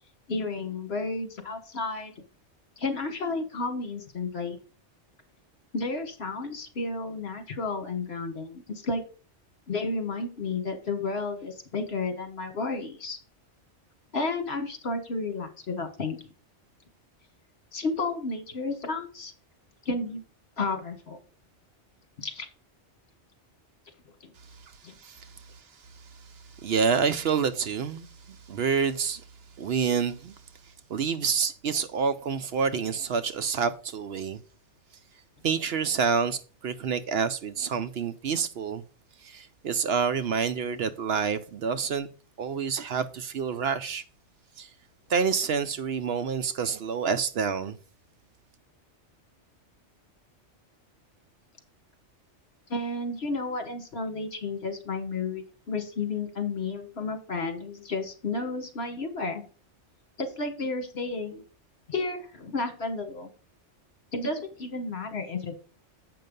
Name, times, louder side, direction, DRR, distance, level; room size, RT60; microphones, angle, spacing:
voice 1, 0.3-2.1 2.8-4.6 5.7-9.0 9.7-13.2 14.1-16.2 17.7-19.3 19.8-20.2 20.6-21.2 22.2-22.5 24.8-24.9 52.7-59.4 60.2-61.4 61.9-63.3 64.1-65.6, left 3 dB, 60° left, 1.6 m, -32 dB
voice 2, 25.0-25.3 26.6-29.2 29.6-30.3 30.9-34.4 35.4-38.8 39.2-42.1 42.4-44.0 44.6-44.7 45.1-47.8, right 6 dB, 65° right, 0.8 m, -28 dB
7.7 x 5.5 x 5.2 m
omnidirectional pair, 1.2 m